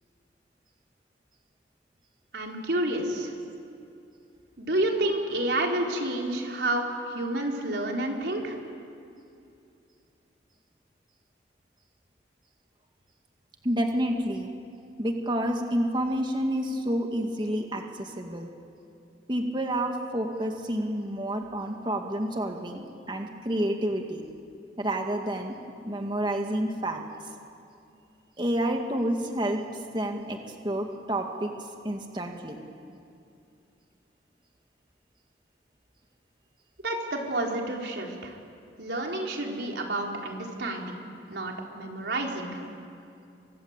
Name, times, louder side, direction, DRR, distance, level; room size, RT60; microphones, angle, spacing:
voice 1, 2.3-3.3 4.6-8.6 36.8-38.3 38.8-41.0 41.3-42.6, right 1 dB, 70° right, 0 dB, 4.3 m, -29 dB
voice 2, 13.6-14.5 15.0-18.5 19.3-24.2 24.8-25.5 25.9-27.0 28.4-29.6 29.9-30.4 30.6-31.5 31.8-32.6, right 1 dB, 25° right, 3 dB, 2.2 m, -29 dB
29.0 x 24.5 x 8.3 m, 2.6 s
head